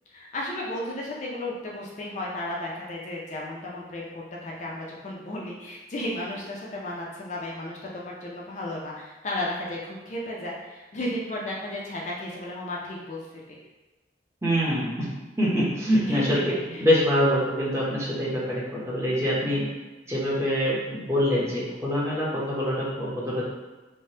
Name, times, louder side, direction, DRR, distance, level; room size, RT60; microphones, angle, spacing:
voice 1, 0.1-13.6 16.1-16.9, left 1 dB, 40° left, -3 dB, 0.4 m, -34 dB
voice 2, 14.4-15.1 15.4-16.5 16.8-19.6 20.1-23.4, equal, 15° right, -6 dB, 0.6 m, -25 dB
3.2 x 2.1 x 2.7 m, 1.2 s
head